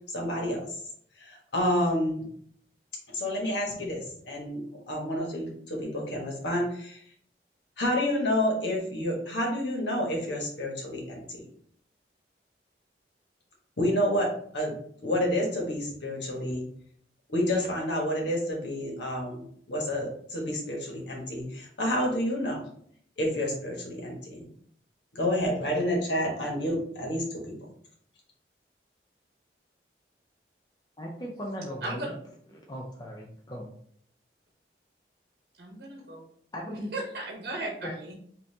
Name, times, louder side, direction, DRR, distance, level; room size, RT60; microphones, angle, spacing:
voice 1, 0.1-0.6 1.2-2.2 3.1-7.0 7.8-11.4 13.8-14.7 15.0-16.6 17.3-19.4 19.7-22.6 23.2-24.4 25.1-27.5, left 1 dB, 85° left, -1 dB, 1.3 m, -29 dB
voice 2, 31.0-32.1 32.7-33.7 36.5-36.9 37.8-37.9, equal, 25° left, -1 dB, 0.5 m, -38 dB
voice 3, 31.8-32.1 35.6-36.2 36.7-38.1, right 2 dB, 65° right, -1 dB, 0.9 m, -36 dB
5.4 x 2.7 x 2.8 m, 0.63 s
head